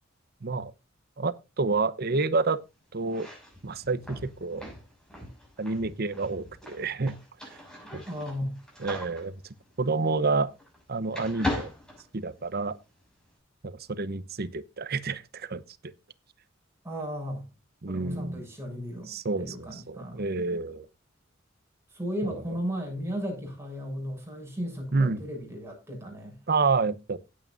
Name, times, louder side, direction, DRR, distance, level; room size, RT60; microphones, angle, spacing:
voice 1, 0.4-0.7 1.2-2.6 2.9-3.3 3.6-4.7 5.6-7.1 7.9-8.0 8.8-9.3 9.8-10.5 10.9-11.7 12.1-12.8 13.6-15.6 17.8-18.4 19.1-20.9 22.2-22.3 24.9-25.2 26.5-27.2, right 3 dB, 55° right, 0.9 m, -29 dB
sound 1, 3.0-10.8 11.1-12.7, left 1 dB, 5° left, 6.1 m, -39 dB
voice 2, 8.1-8.6 16.8-17.4 17.9-20.2 21.9-26.4, equal, 15° right, 6.9 m, -35 dB
16.5 x 8.7 x 2.6 m
head